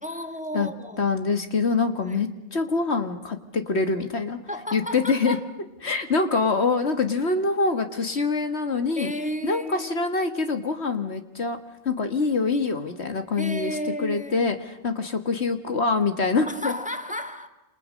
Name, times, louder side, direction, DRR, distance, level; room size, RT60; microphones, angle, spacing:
voice 1, 0.0-1.1 2.0-2.3 4.5-5.5 9.0-10.4 13.4-14.4 16.5-17.5, equal, 5° right, 7 dB, 1.7 m, -33 dB
voice 2, 1.0-4.4 4.7-5.4 5.8-9.1 9.4-11.6 11.9-16.7, left 4 dB, 55° left, 7 dB, 1.9 m, -25 dB
29.0 x 28.0 x 6.5 m, 0.98 s
omnidirectional pair, 1.3 m